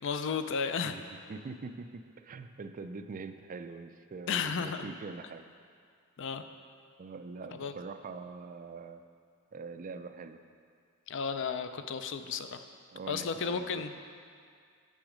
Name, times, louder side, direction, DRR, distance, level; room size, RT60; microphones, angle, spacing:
voice 1, 0.0-1.0 4.3-4.8 6.2-6.4 7.6-7.7 11.1-12.6 13.1-13.9, left 6 dB, 60° left, 9 dB, 0.4 m, -33 dB
voice 2, 1.3-5.5 7.0-9.0 9.5-10.4 12.9-13.8, right 4 dB, 40° right, 8 dB, 0.3 m, -43 dB
9.0 x 6.2 x 5.0 m, 2.2 s
head